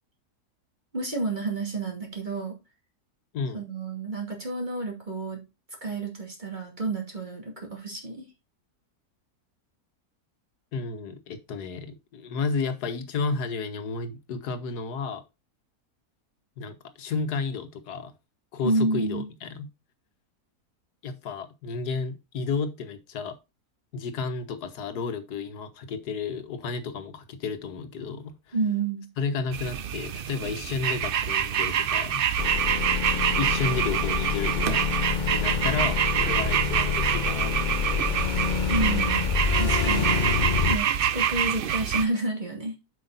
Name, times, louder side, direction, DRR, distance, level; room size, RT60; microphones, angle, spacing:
voice 1, 0.9-2.6 3.5-5.4 5.8-8.3 18.6-19.3 28.5-29.1 38.7-40.1 40.7-42.8, right 2 dB, 30° right, 2.6 m, -30 dB
voice 2, 10.7-15.2 16.6-18.1 18.5-19.7 21.0-23.4 23.9-28.5 29.2-32.2 33.4-34.9 35.3-37.6 37.8-38.4, left 5 dB, 85° left, 1.6 m, -32 dB
sound 1, 29.5-42.0, right 9 dB, 80° right, 0.5 m, -26 dB
sound 2, 32.4-40.8, left 6 dB, 50° left, 0.5 m, -27 dB
7.8 x 5.7 x 4.0 m
omnidirectional pair, 1.7 m